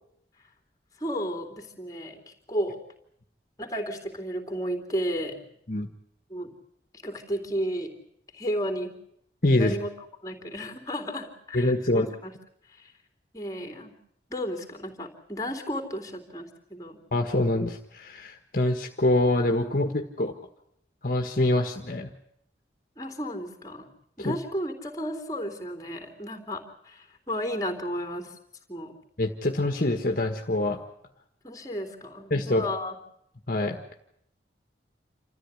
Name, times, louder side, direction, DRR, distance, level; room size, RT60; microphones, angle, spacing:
voice 1, 1.0-2.8 3.6-5.5 6.3-6.5 7.0-8.0 8.3-8.9 9.5-9.9 10.2-12.3 12.7-12.9 13.3-13.9 14.3-17.0 23.0-23.9 24.2-28.4 28.7-28.9 31.4-33.0, equal, 20° left, 4 dB, 3.5 m, -33 dB
voice 2, 9.4-9.7 11.5-12.1 17.1-20.3 21.0-22.1 24.2-24.3 29.2-30.8 32.3-32.7 33.5-33.8, left 1 dB, 50° left, 4 dB, 1.5 m, -25 dB
28.0 x 14.0 x 9.8 m, 0.73 s
head